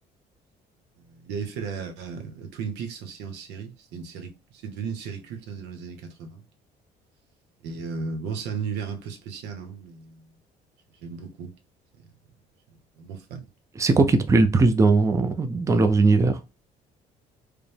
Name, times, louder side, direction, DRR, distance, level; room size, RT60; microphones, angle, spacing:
voice 1, 1.0-6.4 7.6-10.3 11.0-11.5 11.9-12.1 12.7-13.5, right 5 dB, 90° right, 0.9 m, -35 dB
voice 2, 13.8-16.4, right 3 dB, 20° right, 0.5 m, -19 dB
4.9 x 2.1 x 3.3 m
cardioid pair, 110°, 17 cm